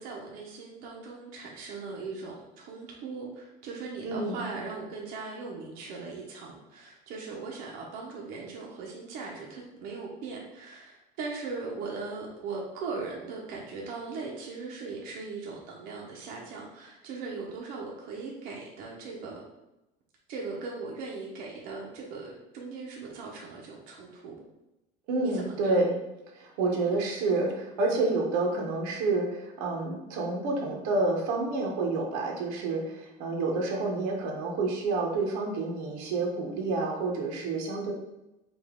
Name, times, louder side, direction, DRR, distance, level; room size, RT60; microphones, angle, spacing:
voice 1, 0.0-19.4 20.3-24.4 25.2-25.8 27.8-28.1, right 4 dB, 65° right, -3 dB, 0.9 m, -39 dB
voice 2, 4.0-4.4 25.1-26.0 26.3-37.9, right 3 dB, 85° right, 0 dB, 1.1 m, -29 dB
5.3 x 2.7 x 3.7 m, 0.95 s
cardioid pair, 160°, 17 cm